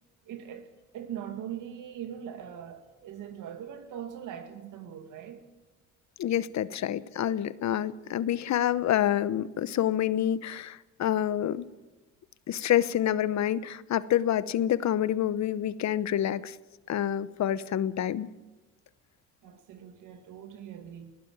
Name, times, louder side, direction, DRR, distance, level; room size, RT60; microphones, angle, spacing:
voice 1, 0.2-5.4 19.4-21.2, right 9 dB, 85° right, 2.2 m, -41 dB
voice 2, 6.2-11.7 12.5-16.6 16.9-18.3, left 11 dB, 65° left, 0.9 m, -27 dB
20.5 x 15.5 x 8.8 m
cardioid pair, 90°, 30 cm